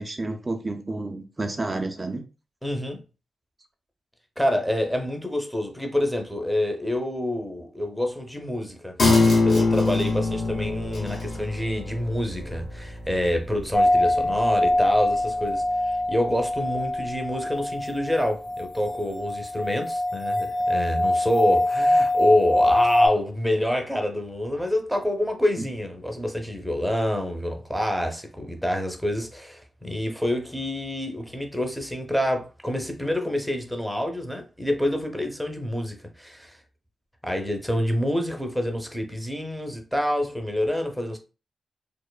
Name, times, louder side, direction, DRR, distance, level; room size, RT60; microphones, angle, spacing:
voice 1, 0.0-2.2 25.6-25.7, right 2 dB, 35° right, 0.4 m, -30 dB
voice 2, 2.6-3.0 4.4-8.9 9.3-36.6 37.2-41.2, left 1 dB, ahead, 0.7 m, -27 dB
sound 1, 9.0-16.0 16.4-16.5, left 3 dB, 65° left, 1.0 m, -25 dB
sound 2, 13.7-23.1, left 1 dB, 35° left, 0.7 m, -23 dB
3.0 x 2.0 x 2.2 m
cardioid pair, 55°, 0 cm